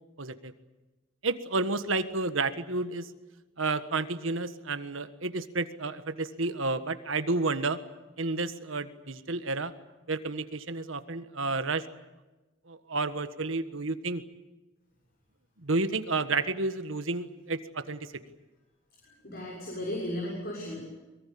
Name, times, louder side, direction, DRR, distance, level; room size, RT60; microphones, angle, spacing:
voice 1, 0.2-0.5 1.2-3.1 3.6-7.8 8.2-9.7 10.1-11.8 12.7-14.2 15.6-18.2, right 3 dB, 75° right, 10 dB, 1.5 m, -31 dB
voice 2, 19.0-20.8, left 1 dB, 50° left, -2 dB, 6.5 m, -35 dB
23.5 x 22.5 x 8.5 m, 1.1 s
head